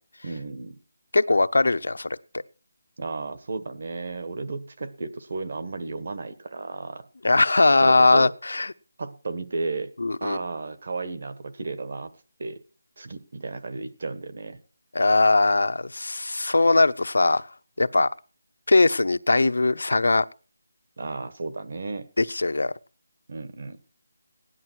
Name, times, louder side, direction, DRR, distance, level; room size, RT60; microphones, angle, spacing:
voice 1, 0.2-0.8 3.0-7.0 7.7-8.3 9.0-9.9 10.2-12.1 12.4-12.6 13.0-14.6 21.0-22.0 23.3-23.8, right 3 dB, 40° right, 10 dB, 1.4 m, -33 dB
voice 2, 1.1-2.4 7.2-8.7 10.0-10.4 14.9-17.5 17.8-18.1 18.7-20.2 22.2-22.7, left 2 dB, 80° left, 11 dB, 0.8 m, -20 dB
17.0 x 11.0 x 4.6 m, 0.36 s
figure-of-eight pair, 180°, 0 cm